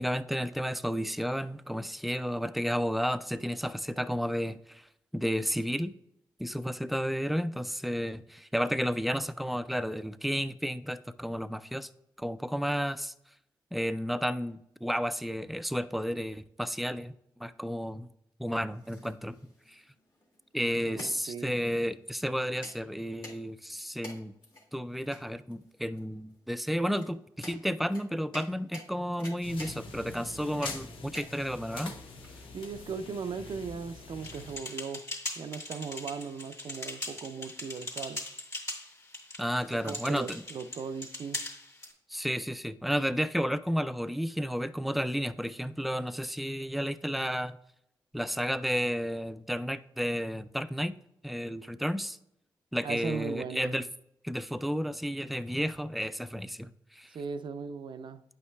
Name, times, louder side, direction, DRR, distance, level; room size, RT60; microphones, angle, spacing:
voice 1, 0.0-4.9 5.1-5.9 6.4-11.9 12.2-13.1 13.7-17.1 17.4-18.1 18.4-19.4 19.7-19.8 20.5-24.3 24.7-32.0 39.4-40.4 42.1-47.6 48.1-50.9 51.2-52.2 52.7-53.8 54.2-57.2, equal, ahead, 13 dB, 0.3 m, -32 dB
sound 1, 18.4-33.3, left 1 dB, 60° left, 1.6 m, -50 dB
voice 2, 20.9-21.5 32.5-35.1 35.4-38.2 39.7-41.4 52.8-53.7 57.1-58.2, right 5 dB, 65° right, 11 dB, 0.5 m, -38 dB
sound 2, 29.4-34.6, left 3 dB, 85° left, 0.7 m, -44 dB
sound 3, 34.2-41.9, left 2 dB, 35° left, 2.3 m, -40 dB
9.3 x 5.5 x 2.2 m, 0.81 s
cardioid pair, 55°, 9 cm